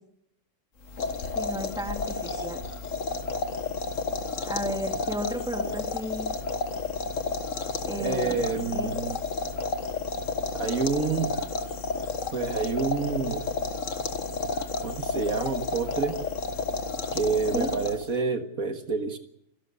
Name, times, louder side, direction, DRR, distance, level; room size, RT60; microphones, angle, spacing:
sound 1, 0.8-18.2, left 4 dB, 60° left, 1.8 m, -31 dB
voice 1, 1.3-2.6 4.4-6.3 7.8-8.9 17.5-17.7, equal, 5° right, 4 dB, 2.6 m, -33 dB
voice 2, 8.0-9.2 10.5-11.3 12.3-13.4 14.8-16.2 17.1-19.2, right 5 dB, 70° right, 7 dB, 2.0 m, -28 dB
28.0 x 13.5 x 6.8 m, 0.77 s
omnidirectional pair, 1.6 m